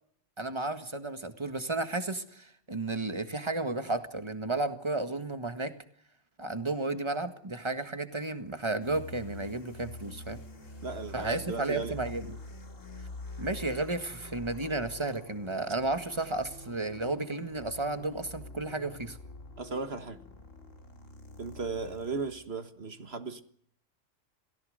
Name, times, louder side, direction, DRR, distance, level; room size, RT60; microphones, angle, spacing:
voice 1, 0.4-5.7 6.4-10.4 11.1-12.4 13.4-19.2, right 2 dB, 20° right, 1.8 m, -33 dB
sound 1, 8.8-22.5, left 2 dB, 90° left, 2.9 m, -46 dB
voice 2, 10.8-12.0 19.6-20.2 21.4-23.4, right 4 dB, 55° right, 1.7 m, -36 dB
28.0 x 18.0 x 6.6 m
omnidirectional pair, 1.3 m